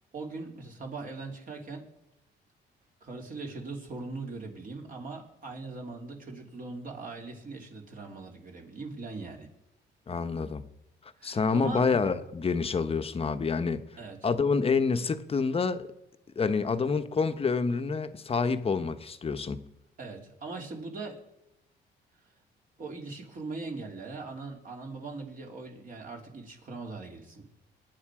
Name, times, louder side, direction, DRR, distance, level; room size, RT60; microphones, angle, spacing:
voice 1, 0.1-1.8 3.0-9.5 11.2-11.9 14.0-14.3 20.0-21.2 22.8-27.5, right 3 dB, 45° right, 3.1 m, -40 dB
voice 2, 10.1-10.6 11.2-13.8 14.2-15.9 16.4-19.6, left 5 dB, 30° left, 0.9 m, -27 dB
22.5 x 9.6 x 4.9 m
cardioid pair, 105°, 19 cm